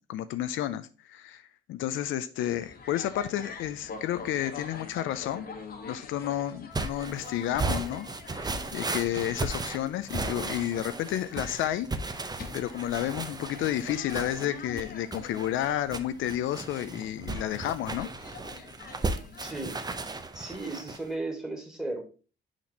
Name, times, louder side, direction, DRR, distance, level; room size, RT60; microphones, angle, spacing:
voice 1, 0.1-1.4 1.7-5.5 5.9-11.9 12.5-18.1, left 12 dB, 85° left, 0.5 m, -31 dB
sound 1, 2.4-20.0, left 4 dB, 50° left, 1.3 m, -46 dB
sound 2, 6.7-21.1, right 3 dB, 20° right, 0.7 m, -35 dB
voice 2, 19.4-22.0, right 2 dB, 5° right, 1.9 m, -36 dB
6.0 x 4.2 x 4.1 m
cardioid pair, 90°, 20 cm